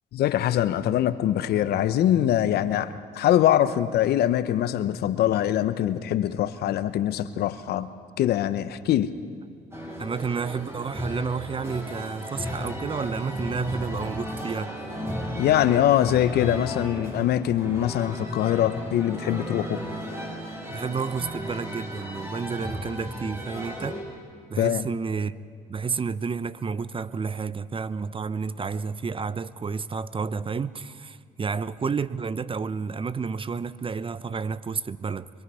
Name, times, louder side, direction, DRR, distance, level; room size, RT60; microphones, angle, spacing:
voice 1, 0.1-7.9 8.2-9.1 15.4-19.8 24.6-24.8, left 11 dB, 75° left, 13 dB, 0.9 m, -23 dB
sound 1, 9.7-24.0, equal, 15° right, 6.5 m, -35 dB
voice 2, 10.0-14.8 20.7-24.0 24.5-25.4 25.7-35.3, right 5 dB, 30° right, 17 dB, 0.7 m, -30 dB
25.0 x 22.0 x 5.6 m, 2.3 s
supercardioid pair, 65°, 17 cm